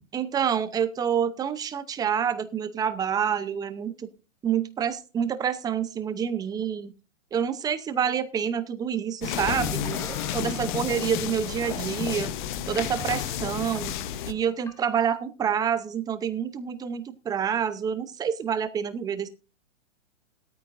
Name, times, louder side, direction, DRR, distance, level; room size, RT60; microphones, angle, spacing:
voice 1, 0.1-4.1 4.4-6.9 7.3-12.3 12.7-13.9 14.3-19.3, right 8 dB, 10° right, 12 dB, 0.7 m, -28 dB
sound 1, 9.2-14.3, left 11 dB, 40° left, 1.1 m, -31 dB
sound 2, 9.4-15.2, left 2 dB, 5° left, 1.4 m, -41 dB
17.5 x 13.0 x 2.6 m, 0.34 s
hypercardioid pair, 145°, 38 cm